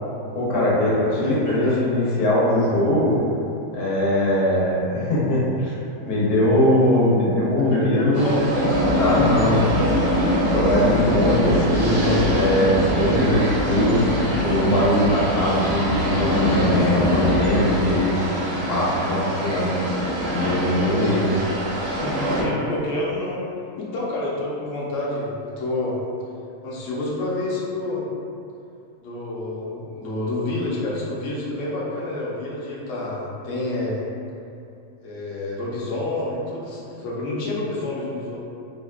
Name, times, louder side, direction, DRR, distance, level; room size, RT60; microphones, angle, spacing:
voice 1, 0.3-3.2 3.7-5.8 6.1-8.5 9.0-9.9 10.5-14.0 14.4-18.1 18.7-19.7 20.3-21.2, left 1 dB, 85° left, -6 dB, 1.2 m, -21 dB
voice 2, 1.1-1.8 7.7-8.7 11.0-11.4 20.7-21.3 22.0-23.4 23.8-26.0 26.6-28.0 29.0-34.0 35.0-38.4, left 2 dB, 65° left, -6 dB, 0.9 m, -28 dB
sound 1, 8.1-22.4, equal, 60° right, 0.6 m, -23 dB
3.5 x 2.1 x 2.3 m, 2.6 s
omnidirectional pair, 1.6 m